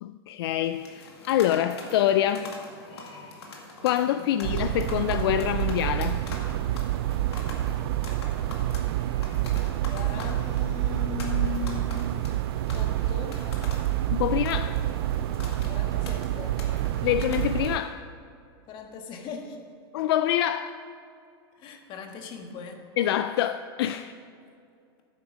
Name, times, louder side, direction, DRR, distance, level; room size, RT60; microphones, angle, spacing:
voice 1, 0.0-2.5 3.8-6.2 14.1-14.8 17.0-18.0 19.9-20.8 23.0-24.1, left 11 dB, 70° left, 11 dB, 0.4 m, -26 dB
sound 1, 0.6-17.9, left 3 dB, 90° left, 2.1 m, -44 dB
voice 2, 4.1-4.9 9.9-12.1 12.7-13.5 15.7-16.7 18.7-19.6 21.5-22.9, left 7 dB, 35° left, 4 dB, 1.4 m, -39 dB
sound 2, 4.4-17.8, right 13 dB, 65° right, 0.4 m, -28 dB
9.6 x 8.1 x 6.3 m, 2.5 s
supercardioid pair, 135°, 13 cm